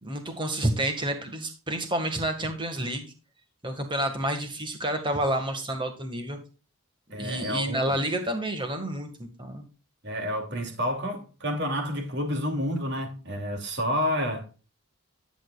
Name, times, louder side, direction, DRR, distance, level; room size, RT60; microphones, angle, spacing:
voice 1, 0.0-3.1 3.6-6.4 7.2-9.7, right 1 dB, 20° right, 1.8 m, -29 dB
voice 2, 7.1-8.0 10.0-14.6, equal, 50° right, 2.7 m, -30 dB
11.0 x 8.9 x 2.4 m
head